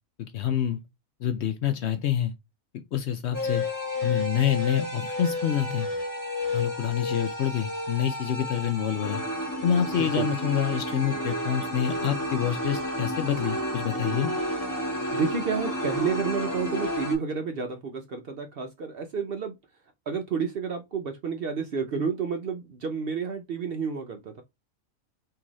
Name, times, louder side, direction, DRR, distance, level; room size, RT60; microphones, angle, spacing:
voice 1, 0.2-0.8 1.2-2.3 2.9-3.6 4.0-5.9 6.5-9.2 9.6-14.3, left 9 dB, 65° left, 0.7 m, -27 dB
sound 1, 3.3-17.1, left 1 dB, 15° left, 1.0 m, -31 dB
voice 2, 10.0-10.3 15.1-19.5 20.1-24.4, right 5 dB, 60° right, 0.7 m, -30 dB
3.8 x 2.7 x 2.9 m
omnidirectional pair, 1.4 m